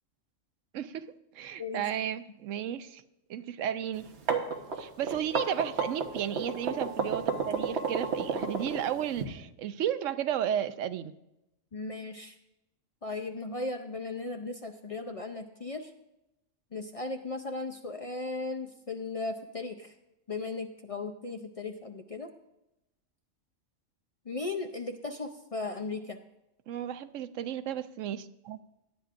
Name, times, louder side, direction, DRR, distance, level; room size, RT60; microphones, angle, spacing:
voice 1, 0.7-1.1 1.3-3.0 3.3-4.1 4.8-11.1 26.7-28.6, right 10 dB, 85° right, 12 dB, 1.0 m, -33 dB
sound 1, 4.0-9.2, right 5 dB, 60° right, 1.4 m, -31 dB
voice 2, 11.7-12.4 13.0-15.9 16.7-19.9 20.3-22.3 24.3-26.2, left 3 dB, 40° left, 5 dB, 0.5 m, -36 dB
17.5 x 10.5 x 2.5 m, 0.91 s
omnidirectional pair, 1.3 m